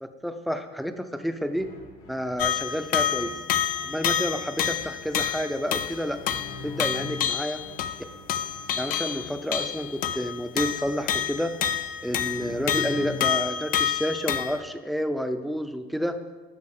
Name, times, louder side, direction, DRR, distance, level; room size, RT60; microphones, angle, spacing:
voice 1, 0.0-1.7 2.1-3.3 3.8-6.2 6.6-7.6 8.8-11.5 12.0-16.2, equal, ahead, 8 dB, 0.4 m, -30 dB
sound 1, 1.5-13.5, left 3 dB, 90° left, 1.7 m, -44 dB
sound 2, 2.4-14.6, left 9 dB, 55° left, 0.5 m, -28 dB
12.0 x 4.6 x 3.5 m, 1.3 s
cardioid pair, 145°, 17 cm